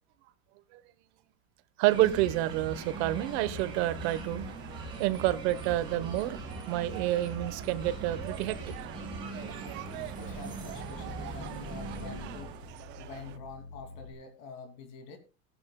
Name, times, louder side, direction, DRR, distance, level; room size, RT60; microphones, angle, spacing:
voice 1, 1.8-4.4 5.0-6.4 6.7-8.8, right 15 dB, 55° right, 13 dB, 1.1 m, -28 dB
sound 1, 1.9-12.7, right 2 dB, 10° right, 5.1 m, -41 dB
sound 2, 2.8-13.4, right 14 dB, 30° right, 0.4 m, -45 dB
sound 3, 3.0-14.1, left 3 dB, 15° left, 4.4 m, -53 dB
voice 2, 10.1-12.6 13.0-15.2, left 5 dB, 55° left, 6 dB, 2.7 m, -46 dB
17.0 x 10.5 x 2.2 m, 0.31 s
supercardioid pair, 170°, 38 cm